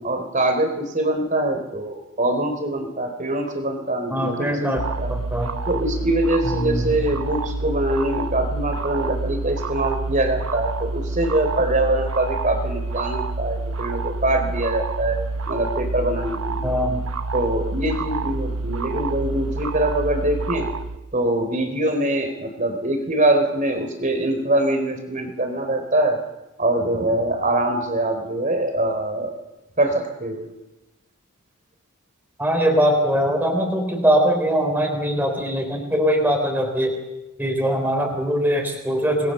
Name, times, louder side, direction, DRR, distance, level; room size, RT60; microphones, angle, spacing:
voice 1, 0.0-5.1 5.7-16.7 17.3-20.7 21.1-26.2 26.6-29.3 29.8-30.5, right 1 dB, 35° right, 6 dB, 4.1 m, -23 dB
voice 2, 4.1-4.8 5.1-5.6 6.4-6.9 16.6-17.0 32.4-37.0 37.4-39.3, equal, 10° right, 1 dB, 4.2 m, -21 dB
sound 1, 4.8-21.0, right 3 dB, 80° right, 1.1 m, -28 dB
28.5 x 21.0 x 6.9 m, 1.0 s
head